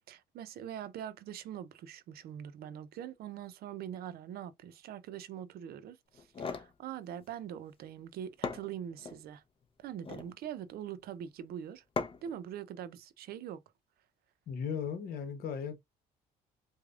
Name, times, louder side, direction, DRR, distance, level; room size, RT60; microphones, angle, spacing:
voice 1, 0.1-9.4 9.8-11.8 12.2-13.6, right 10 dB, 65° right, 0.6 m, -43 dB
sound 1, 6.1-6.7 8.0-8.1 8.4-9.2 9.9-10.3 12.0-12.4, left 5 dB, 30° left, 0.7 m, -38 dB
voice 2, 14.5-15.8, left 7 dB, 60° left, 1.1 m, -36 dB
4.8 x 2.3 x 2.4 m
cardioid pair, 110°, 17 cm